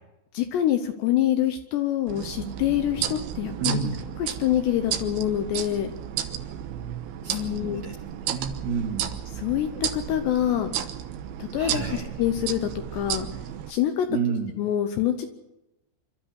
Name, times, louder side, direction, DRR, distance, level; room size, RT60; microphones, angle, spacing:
voice 1, 0.3-3.8 4.2-5.9 7.3-7.8 9.4-10.8 11.4-13.3 13.7-14.1 14.6-15.3, left 11 dB, 75° left, 7 dB, 2.7 m, -26 dB
sound 1, 2.1-13.7, right 10 dB, 75° right, 2.5 m, -33 dB
voice 2, 3.6-4.0 7.2-8.0 8.2-9.1 11.5-12.0 14.1-14.5, right 6 dB, 45° right, 0 dB, 2.8 m, -30 dB
27.0 x 13.0 x 8.1 m, 0.97 s
omnidirectional pair, 5.7 m